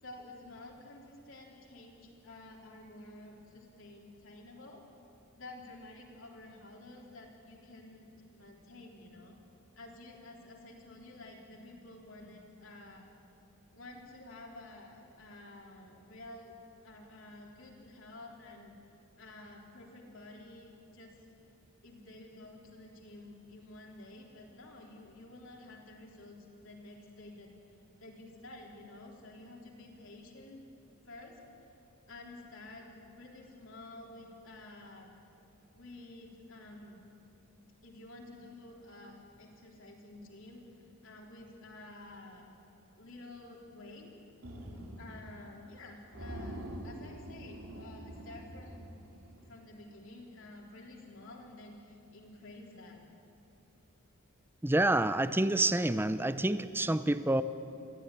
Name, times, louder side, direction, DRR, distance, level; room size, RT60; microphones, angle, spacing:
voice 1, 0.0-4.8 5.4-9.4 9.8-13.1 13.7-16.6 16.8-18.7 19.2-21.1 21.8-26.4 26.6-27.5 28.0-30.6 31.1-31.4 32.1-35.2 35.7-37.0 37.8-42.5 43.0-44.1 45.0-53.0, left 2 dB, 60° left, -1 dB, 3.8 m, -51 dB
sound 1, 44.4-45.4 45.7-45.8 46.1-49.5, right 1 dB, 90° right, 3.3 m, -45 dB
voice 2, 54.6-57.4, right 1 dB, 10° right, 13 dB, 0.6 m, -28 dB
23.5 x 15.5 x 9.9 m, 2.7 s
head